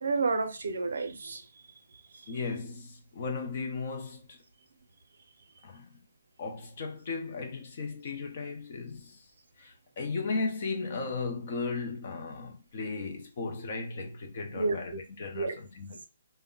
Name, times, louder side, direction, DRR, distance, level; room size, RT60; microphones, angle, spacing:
voice 1, 0.0-1.6 2.1-2.3 14.5-15.0 15.3-15.6, right 3 dB, 70° right, 0.6 m, -31 dB
voice 2, 2.3-4.4 5.6-6.0 6.4-9.2 9.6-16.1, left 4 dB, 35° left, 0.6 m, -36 dB
2.2 x 2.1 x 3.7 m
hypercardioid pair, 170°, 0 cm